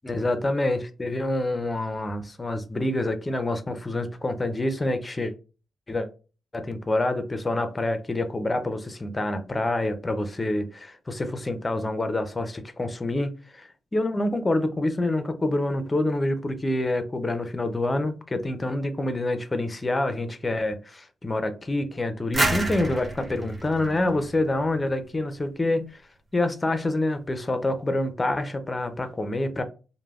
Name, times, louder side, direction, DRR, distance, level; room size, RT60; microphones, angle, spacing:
voice 1, 0.0-5.3 5.9-6.1 6.5-26.0 26.3-29.6, left 2 dB, 25° left, 9 dB, 0.4 m, -27 dB
sound 1, 22.3-25.0, right 2 dB, 25° right, 0.7 m, -29 dB
3.2 x 2.0 x 2.3 m, 0.34 s
cardioid pair, 85°, 0 cm